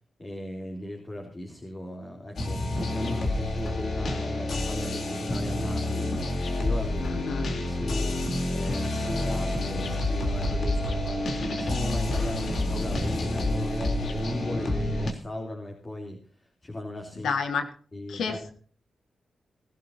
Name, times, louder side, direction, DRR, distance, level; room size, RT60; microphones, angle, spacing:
voice 1, 0.2-7.2 7.5-8.2 8.5-16.2 16.6-17.3 17.9-18.4, left 1 dB, 30° left, 1 dB, 3.3 m, -37 dB
sound 1, 2.3-15.1, left 1 dB, 70° left, 3.4 m, -28 dB
voice 2, 7.1-7.5 17.2-17.7 18.1-18.5, left 5 dB, 90° left, 7 dB, 1.8 m, -29 dB
20.0 x 12.5 x 2.8 m, 0.43 s
cardioid pair, 65°, 0 cm